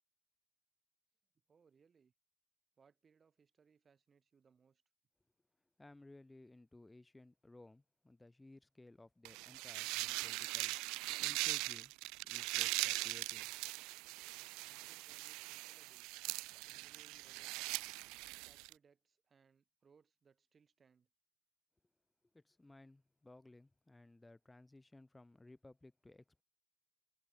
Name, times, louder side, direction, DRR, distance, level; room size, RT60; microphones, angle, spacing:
voice 1, 1.5-2.1 2.8-4.8 14.6-16.1 16.5-17.7 18.4-21.1, right 6 dB, 25° right, 5.7 m, -71 dB
voice 2, 5.8-10.8 11.2-11.9 12.3-13.5 22.3-26.2, left 2 dB, 10° left, 2.7 m, -59 dB
sound 1, 9.2-18.7, right 24 dB, 60° right, 0.7 m, -41 dB
supercardioid pair, 110°, 0 cm